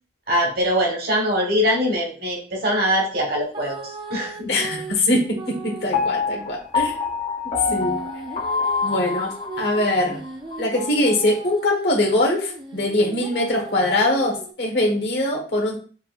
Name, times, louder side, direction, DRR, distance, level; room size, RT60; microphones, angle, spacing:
voice 1, 0.3-4.5, equal, 55° right, 0 dB, 1.3 m, -22 dB
sound 1, 3.5-6.2 7.7-14.5, right 3 dB, 25° right, 0.5 m, -37 dB
voice 2, 4.5-5.2 5.6-6.9 7.7-8.0 8.8-10.2 10.6-14.3 14.6-15.8, left 1 dB, 70° left, -1 dB, 1.2 m, -22 dB
Piano, 5.9-10.0 10.5-10.6, left 5 dB, 35° left, 0.8 m, -25 dB
5.6 x 2.7 x 2.5 m, 0.40 s
head